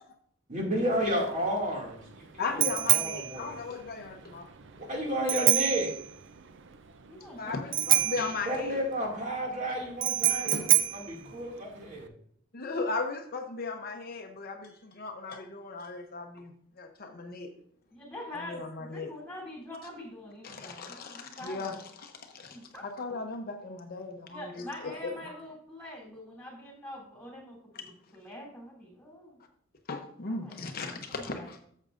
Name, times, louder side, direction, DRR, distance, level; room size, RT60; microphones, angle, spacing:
voice 1, 0.5-3.5 4.7-5.9 8.5-12.1, equal, 40° right, -2 dB, 2.3 m, -32 dB
Bicycle bell, 0.9-12.1, right 13 dB, 60° right, 0.6 m, -29 dB
voice 2, 2.4-4.5 7.4-8.8 10.2-10.7 12.5-17.5 18.5-19.1 20.4-22.6 22.8-24.9 25.2-25.3 29.9-31.6, left 3 dB, 50° left, 4 dB, 0.7 m, -37 dB
voice 3, 7.1-8.2 17.9-21.8 22.5-22.8 24.3-29.4 30.3-31.5, left 1 dB, 5° left, -3 dB, 3.3 m, -45 dB
11.5 x 7.4 x 2.5 m, 0.64 s
head